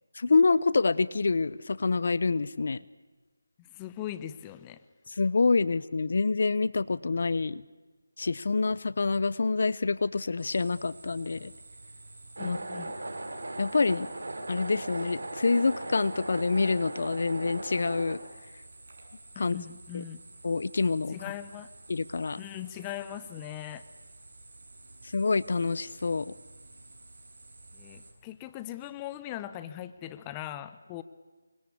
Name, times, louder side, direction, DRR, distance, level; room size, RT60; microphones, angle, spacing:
voice 1, 0.1-2.8 5.1-7.6 8.2-11.5 12.4-12.6 13.6-14.1 14.5-18.2 19.4-19.6 19.9-20.0 20.4-21.2 21.9-22.4 25.0-26.3, left 4 dB, 50° left, 19 dB, 0.8 m, -27 dB
voice 2, 3.6-4.8 12.4-12.9 19.3-20.2 21.1-21.7 22.4-23.8 27.7-31.0, left 12 dB, 15° left, 13 dB, 0.8 m, -40 dB
sound 1, 10.4-28.1, right 2 dB, 55° right, 7.6 m, -51 dB
sound 2, 12.4-18.2, right 2 dB, 75° right, 5.2 m, -38 dB
27.5 x 25.0 x 8.5 m, 1.3 s
figure-of-eight pair, 170°, 0 cm